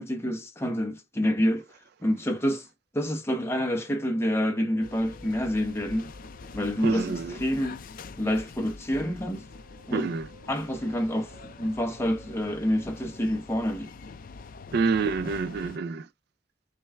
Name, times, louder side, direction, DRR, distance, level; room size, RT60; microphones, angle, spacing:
voice 1, 0.0-1.6 2.0-2.7 2.9-6.1 6.5-7.8 8.2-9.4 9.9-10.1 10.5-13.9, equal, 15° left, 0.8 m, -28 dB
Musical instrument, 3.1-7.7 9.0-13.8 15.0-15.4, right 2 dB, 30° right, 1.7 m, -55 dB
sound 1, 4.8-15.8, left 4 dB, 45° left, 0.4 m, -45 dB
voice 2, 6.8-7.4 9.9-10.3 14.7-16.1, right 5 dB, 55° right, 0.3 m, -27 dB
6.1 x 3.3 x 2.2 m
head